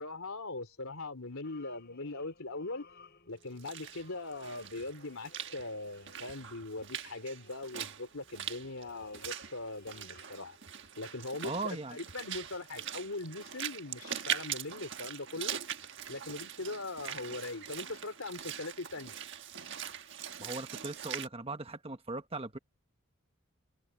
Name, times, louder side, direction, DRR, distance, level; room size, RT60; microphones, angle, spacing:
voice 1, 0.0-2.9 3.3-10.6 11.0-15.6 16.1-19.1, left 2 dB, 75° left, 3.2 m, -41 dB
sound 1, 0.7-11.2, equal, 25° left, 6.4 m, -73 dB
sound 2, 1.4-6.7 7.1-10.3, left 4 dB, 50° left, 7.9 m, -59 dB
Walk footsteps / Splash splatter, 3.4-21.3, right 9 dB, 55° right, 1.4 m, -42 dB
voice 2, 11.4-12.0 20.4-22.6, right 3 dB, 25° right, 1.3 m, -39 dB
open air
head